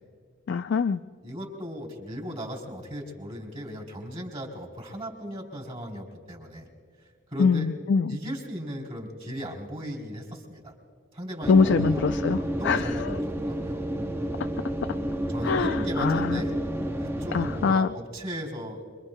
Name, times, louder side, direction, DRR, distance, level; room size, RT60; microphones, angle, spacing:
voice 1, 0.5-1.0 7.4-8.2 11.5-12.4 12.6-13.1 15.4-16.4 17.3-17.9, left 5 dB, 60° left, 9 dB, 0.4 m, -23 dB
voice 2, 1.2-6.7 7.3-7.7 8.1-10.7 11.1-12.1 12.6-13.8 15.3-16.5 17.0-18.8, equal, 30° right, 0 dB, 3.5 m, -36 dB
sound 1, 11.4-17.7, equal, 10° right, 0.6 m, -30 dB
26.0 x 23.5 x 2.2 m, 2.1 s
head